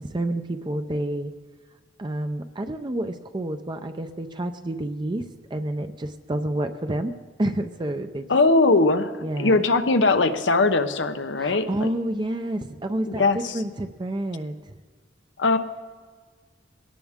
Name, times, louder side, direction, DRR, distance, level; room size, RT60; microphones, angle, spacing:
voice 1, 0.0-1.3 2.0-7.1 7.4-8.3 9.2-9.6 11.4-14.8, right 1 dB, 25° right, 7 dB, 0.6 m, -29 dB
voice 2, 8.3-11.7 13.2-13.5 15.4-15.6, left 3 dB, 85° left, 9 dB, 0.9 m, -20 dB
22.0 x 17.5 x 3.6 m, 1.5 s
head